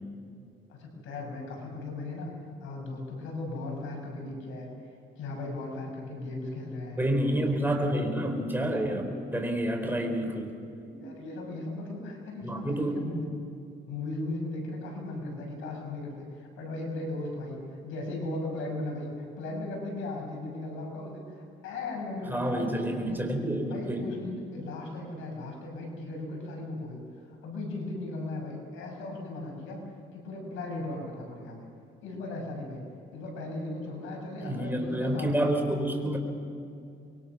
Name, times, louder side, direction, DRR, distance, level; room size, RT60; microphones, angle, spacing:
voice 1, 0.7-2.3 2.6-4.7 5.2-7.0 7.3-7.5 7.8-8.0 10.9-13.2 13.9-23.2 23.7-27.0 27.3-29.8 30.1-31.6 32.0-32.8 33.1-35.8, left 2 dB, 90° left, 1 dB, 6.8 m, -37 dB
voice 2, 7.0-10.5 12.4-13.0 22.3-24.1 34.4-36.2, right 1 dB, 10° right, 3 dB, 4.5 m, -29 dB
25.5 x 22.5 x 6.2 m, 2.6 s
cardioid pair, 90°, 20 cm